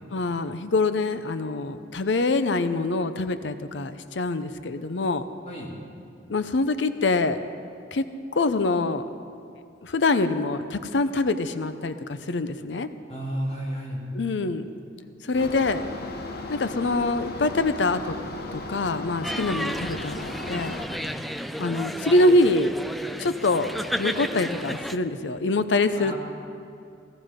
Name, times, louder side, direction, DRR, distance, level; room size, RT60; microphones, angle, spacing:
voice 1, 0.1-5.2 6.3-7.4 7.9-8.1 8.3-9.0 9.8-12.9 14.1-14.7 15.2-15.8 16.5-18.2 18.5-20.1 20.5-20.7 21.6-22.7 23.2-23.7 24.0-26.1, left 2 dB, 75° left, 11 dB, 0.6 m, -24 dB
voice 2, 5.5-5.8 13.1-14.0 20.9-21.2 25.9-26.1, equal, 40° left, -4 dB, 3.1 m, -32 dB
sound 1, 15.3-20.9, left 2 dB, 55° left, 1.0 m, -36 dB
sound 2, 19.2-25.0, equal, ahead, 0.4 m, -32 dB
17.0 x 14.0 x 5.1 m, 2.5 s
head